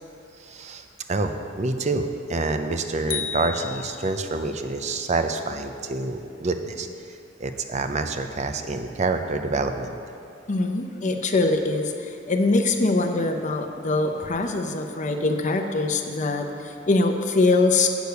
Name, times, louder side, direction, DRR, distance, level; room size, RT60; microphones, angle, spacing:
voice 1, 0.4-6.9 7.4-9.9, right 3 dB, 35° right, 7 dB, 0.5 m, -27 dB
sound 1, 3.1-4.5, left 8 dB, 85° left, 0.6 m, -33 dB
voice 2, 10.5-17.9, left 3 dB, 40° left, 5 dB, 0.7 m, -23 dB
8.2 x 6.6 x 6.7 m, 2.6 s
head